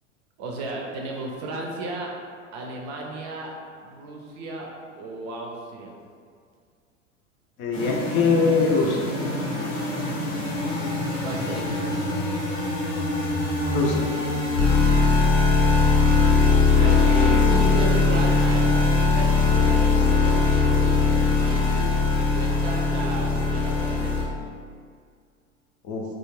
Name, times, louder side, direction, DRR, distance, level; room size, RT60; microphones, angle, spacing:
voice 1, 0.4-2.1 2.5-3.5 3.8-4.7 5.0-6.0 11.2-12.1 16.6-24.3, right 2 dB, 45° right, -1 dB, 0.5 m, -34 dB
voice 2, 7.6-9.2 13.7-14.1 25.8-26.0, left 4 dB, 40° left, -1 dB, 0.5 m, -22 dB
sound 1, 7.7-24.2, left 3 dB, 80° left, 0.8 m, -21 dB
2.3 x 2.1 x 3.1 m, 2.1 s
hypercardioid pair, 85°, 38 cm